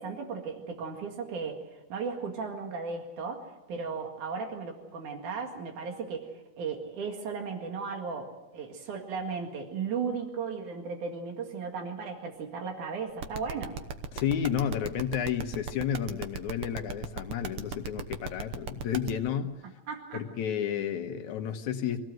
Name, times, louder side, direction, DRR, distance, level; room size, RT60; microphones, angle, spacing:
voice 1, 0.0-1.6 1.9-6.3 6.6-13.7 19.9-20.2, right 5 dB, 85° right, 3 dB, 3.6 m, -36 dB
sound 1, 13.2-19.1, right 6 dB, 60° right, 1.8 m, -36 dB
voice 2, 14.1-19.6 20.1-22.1, left 9 dB, 75° left, 6 dB, 2.6 m, -31 dB
24.5 x 17.5 x 7.8 m, 1.1 s
omnidirectional pair, 3.4 m